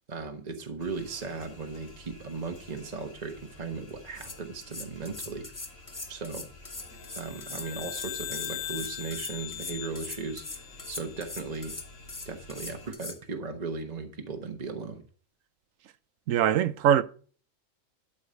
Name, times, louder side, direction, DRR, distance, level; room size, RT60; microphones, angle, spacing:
voice 1, 0.1-5.5 6.1-6.5 7.1-11.7 12.2-15.0, right 4 dB, 30° right, 1.3 m, -37 dB
sound 1, 0.8-12.9, left 2 dB, 90° left, 2.7 m, -51 dB
sound 2, 3.9-4.0 4.2-13.2, left 3 dB, 20° left, 0.5 m, -41 dB
sound 3, 6.9-11.4, left 13 dB, 70° left, 1.0 m, -40 dB
voice 2, 16.3-17.0, right 10 dB, 75° right, 1.1 m, -22 dB
12.0 x 5.2 x 5.1 m
omnidirectional pair, 1.4 m